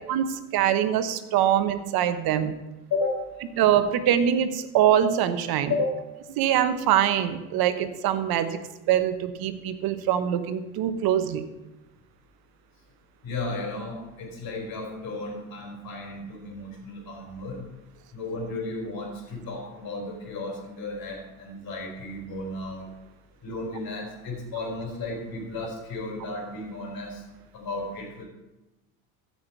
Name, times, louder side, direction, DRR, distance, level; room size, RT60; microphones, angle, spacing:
voice 1, 0.1-2.5 3.6-5.7 6.4-8.6 8.9-11.4, right 10 dB, 55° right, 11 dB, 1.1 m, -23 dB
voice 2, 2.9-3.2 5.7-5.9 13.2-17.7 18.1-22.9 23.4-27.2 27.5-28.2, left 3 dB, 45° left, 0 dB, 4.0 m, -33 dB
15.0 x 5.8 x 4.6 m, 1.0 s
hypercardioid pair, 85°, 45 cm